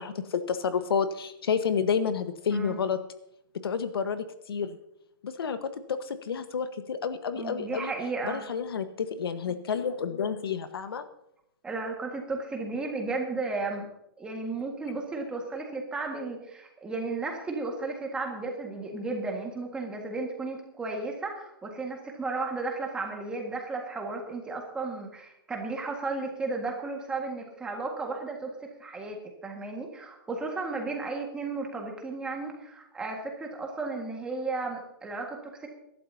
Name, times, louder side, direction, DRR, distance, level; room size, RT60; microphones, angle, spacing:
voice 1, 0.0-3.0 3.6-4.8 5.2-7.9 8.2-11.0, left 6 dB, 90° left, 10 dB, 1.3 m, -30 dB
voice 2, 7.4-8.4 11.6-13.9 14.2-35.7, right 3 dB, 5° right, 1 dB, 1.7 m, -34 dB
22.5 x 12.0 x 2.8 m, 0.81 s
hypercardioid pair, 170°, 12 cm